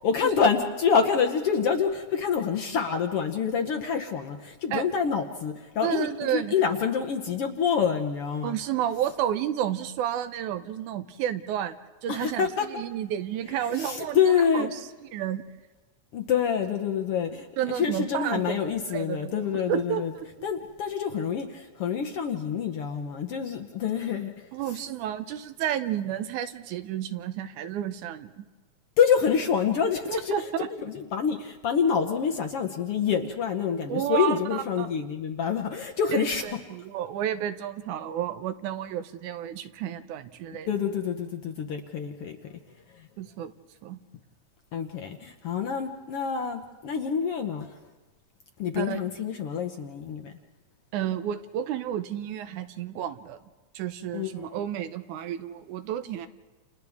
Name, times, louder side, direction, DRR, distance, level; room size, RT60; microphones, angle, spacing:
voice 1, 0.0-8.5 12.1-12.7 13.8-14.7 16.1-20.1 20.4-24.3 29.0-30.3 30.9-36.4 40.7-42.4 44.7-47.7 48.6-50.3 54.1-54.6, left 7 dB, 65° left, 4 dB, 1.6 m, -27 dB
voice 2, 5.8-6.5 8.4-11.8 12.0-14.8 15.1-15.4 17.6-20.5 24.5-28.5 30.1-30.7 33.9-34.9 36.1-40.7 43.2-43.5 43.8-44.0 48.8-49.0 50.9-53.4 53.7-56.3, right 10 dB, 80° right, 10 dB, 2.2 m, -31 dB
30.0 x 29.0 x 3.6 m, 1.2 s
omnidirectional pair, 3.5 m